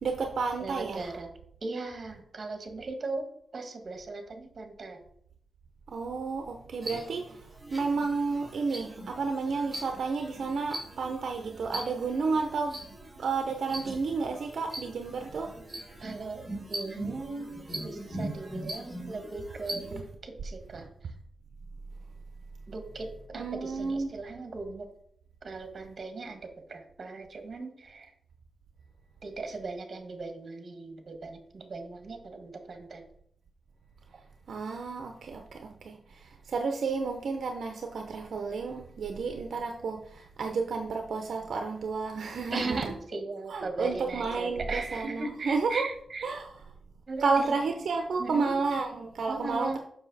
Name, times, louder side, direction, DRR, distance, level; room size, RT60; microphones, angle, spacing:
voice 1, 0.0-1.1 5.9-7.4 7.7-12.7 13.2-15.5 23.3-24.1 34.5-42.9 43.5-45.8 46.2-46.5 47.2-49.8, right 4 dB, 70° right, 4 dB, 0.8 m, -31 dB
voice 2, 0.6-1.3 1.6-3.3 3.5-5.0 16.0-16.4 16.7-20.9 22.7-24.9 25.4-28.1 29.2-33.0 42.5-46.3 47.1-47.5 48.2-48.5 49.3-49.8, right 3 dB, 45° right, 6 dB, 1.5 m, -38 dB
sound 1, 6.8-20.0, right 1 dB, 20° right, 3.2 m, -41 dB
7.2 x 6.1 x 4.1 m, 0.67 s
cardioid pair, 100°, 0 cm